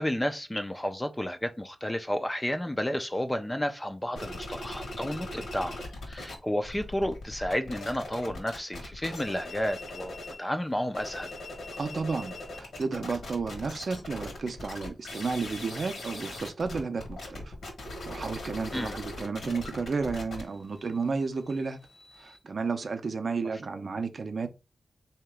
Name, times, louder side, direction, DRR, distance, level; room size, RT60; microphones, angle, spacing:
voice 1, 0.0-11.3 18.7-19.0 23.4-23.5, left 1 dB, 10° left, 0.3 m, -32 dB
sound 1, 4.2-6.4 6.6-10.4 10.8-22.4, left 2 dB, 75° left, 1.4 m, -40 dB
voice 2, 11.7-17.5 18.1-21.8 22.2-24.5, right 4 dB, 45° right, 0.5 m, -32 dB
3.9 x 2.8 x 3.3 m
wide cardioid pair, 175°, 0 cm